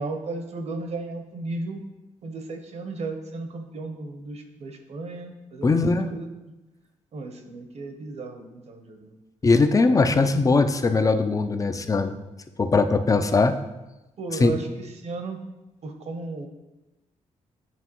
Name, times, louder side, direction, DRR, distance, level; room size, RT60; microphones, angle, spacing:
voice 1, 0.0-1.8 2.2-5.8 6.1-6.3 7.1-9.1 14.2-15.4 15.8-16.5, right 3 dB, 60° right, 5 dB, 0.9 m, -34 dB
voice 2, 5.6-6.1 9.4-12.2 12.6-13.6 14.3-14.6, left 3 dB, 25° left, 8 dB, 0.4 m, -20 dB
9.1 x 3.4 x 3.0 m, 1.0 s
cardioid pair, 90°, 13 cm